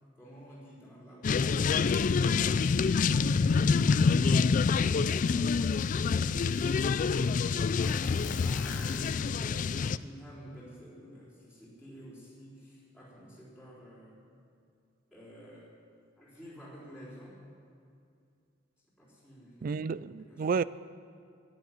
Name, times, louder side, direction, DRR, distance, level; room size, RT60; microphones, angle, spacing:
voice 1, 0.2-2.6 3.1-3.9 4.3-5.6 7.8-14.2 15.1-15.7 16.2-17.4 19.0-20.6, equal, 5° right, 4.0 m, -50 dB
sound 1, 1.2-10.0, left 5 dB, 40° left, 0.3 m, -26 dB
sound 2, 5.3-5.4 5.8-6.9 7.8-9.6, left 5 dB, 75° left, 1.4 m, -46 dB
voice 2, 19.6-20.6, right 5 dB, 45° right, 0.3 m, -31 dB
12.0 x 10.0 x 9.3 m
head